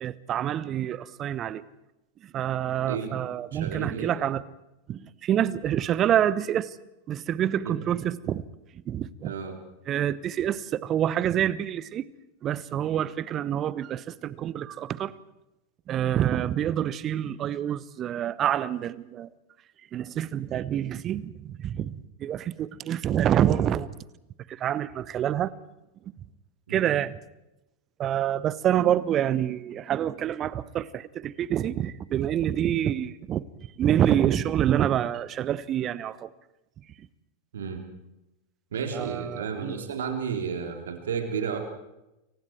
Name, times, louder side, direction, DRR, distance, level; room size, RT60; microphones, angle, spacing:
voice 1, 0.0-1.6 2.2-4.4 4.9-6.8 7.1-8.4 8.9-9.3 9.9-12.1 12.4-15.1 15.9-19.3 19.9-23.9 24.5-25.5 26.7-27.1 28.0-33.4 33.8-36.3 38.9-39.8, right 10 dB, 30° right, 19 dB, 1.0 m, -27 dB
voice 2, 3.5-4.1 7.6-7.8 9.2-9.6 26.7-26.9 37.5-37.8 38.7-41.6, right 6 dB, 65° right, 5 dB, 3.6 m, -32 dB
29.0 x 24.0 x 4.7 m, 0.93 s
figure-of-eight pair, 90°, 0 cm